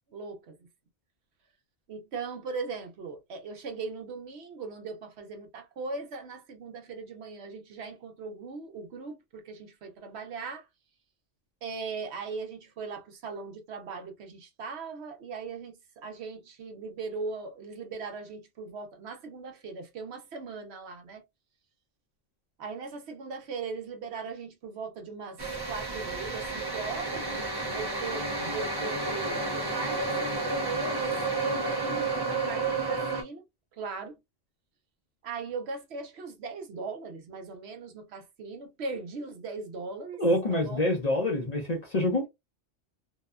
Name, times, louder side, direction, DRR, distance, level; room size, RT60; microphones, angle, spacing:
voice 1, 0.1-0.5 1.9-10.6 11.6-21.2 22.6-25.4 25.7-33.4 33.8-34.1 35.2-40.2 40.5-40.8, right 4 dB, 70° right, 0.9 m, -39 dB
sound 1, 25.4-33.2, right 3 dB, 35° right, 0.4 m, -31 dB
voice 2, 40.2-42.3, left 1 dB, 40° left, 0.7 m, -26 dB
2.7 x 2.1 x 2.3 m
omnidirectional pair, 1.2 m